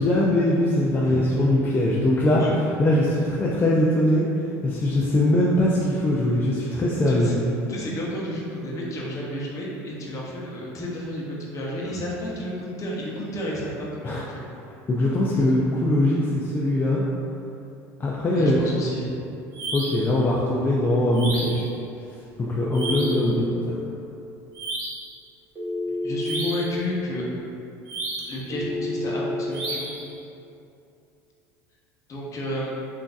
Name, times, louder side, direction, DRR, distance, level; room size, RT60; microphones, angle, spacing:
voice 1, 0.0-2.4 2.8-4.3 4.6-7.3 14.0-14.2 14.9-17.0 18.0-18.6 19.7-21.6 22.1-23.8, left 1 dB, 25° left, -5 dB, 0.4 m, -21 dB
voice 2, 7.7-14.3 18.3-19.2 26.0-27.2 28.3-29.9 32.1-32.7, equal, 40° left, -4 dB, 0.8 m, -31 dB
sound 1, 19.5-20.1 21.1-21.7 22.7-23.3 24.5-25.1 26.2-26.8 27.9-28.4 29.5-30.1, right 2 dB, 55° right, 0.9 m, -32 dB
Telephone, 22.6-23.6 25.5-26.6 28.5-29.5, left 2 dB, 20° right, 1.0 m, -29 dB
3.6 x 2.6 x 2.4 m, 2.7 s
supercardioid pair, 90°, 8 cm